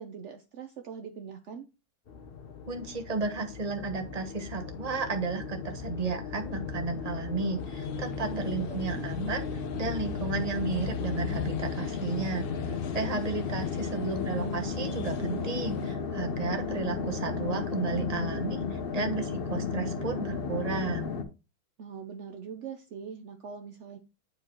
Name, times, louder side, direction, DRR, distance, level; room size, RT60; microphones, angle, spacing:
voice 1, 0.0-1.7 8.5-9.1 13.9-14.5 21.8-24.0, right 6 dB, 70° right, 5 dB, 0.6 m, -43 dB
sound 1, 2.1-21.2, left 5 dB, 50° left, 0.7 m, -34 dB
voice 2, 2.7-21.2, right 4 dB, 25° right, 5 dB, 0.9 m, -33 dB
sound 2, 7.6-16.0, left 10 dB, 80° left, 1.4 m, -43 dB
9.5 x 4.7 x 3.0 m, 0.28 s
omnidirectional pair, 2.1 m